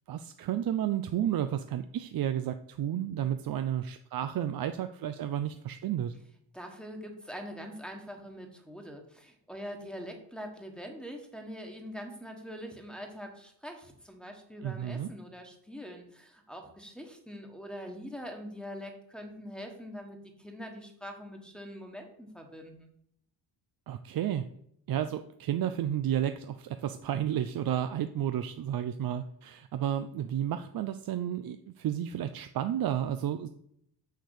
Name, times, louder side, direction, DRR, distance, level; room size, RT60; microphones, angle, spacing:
voice 1, 0.1-6.1 14.6-15.1 23.9-24.4 24.9-33.5, right 10 dB, 55° right, 9 dB, 0.6 m, -32 dB
voice 2, 6.5-22.9, equal, ahead, 2 dB, 1.5 m, -43 dB
6.8 x 6.5 x 6.5 m, 0.71 s
cardioid pair, 115°, 44 cm